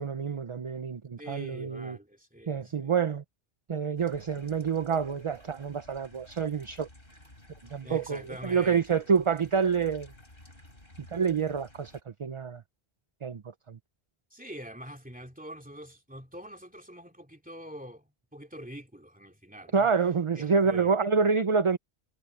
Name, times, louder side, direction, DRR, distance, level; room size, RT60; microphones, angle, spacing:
voice 1, 0.0-2.0 2.5-3.2 3.7-6.9 7.7-10.1 11.1-11.9 12.2-12.6 13.2-13.4 13.7-13.8 19.7-21.8, right 5 dB, 35° right, 0.6 m, -27 dB
voice 2, 1.2-3.0 7.8-9.1 14.3-19.9 20.3-20.9, equal, 10° right, 2.6 m, -45 dB
sound 1, 4.0-12.0, left 1 dB, 55° left, 5.2 m, -54 dB
omnidirectional pair, 1.1 m